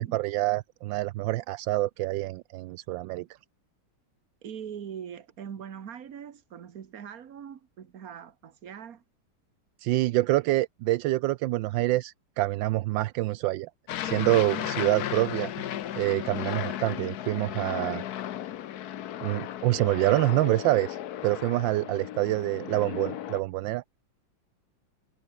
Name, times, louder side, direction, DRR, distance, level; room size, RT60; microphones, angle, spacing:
voice 1, 0.0-3.2 9.8-13.7 14.0-15.5 16.0-18.0 19.2-21.0 21.2-23.8, right 17 dB, 80° right, 1.3 m, -26 dB
voice 2, 4.4-9.0, right 8 dB, 50° right, 1.7 m, -42 dB
Aircraft, 13.9-23.4, left 11 dB, 60° left, 1.2 m, -35 dB
omnidirectional pair, 2.1 m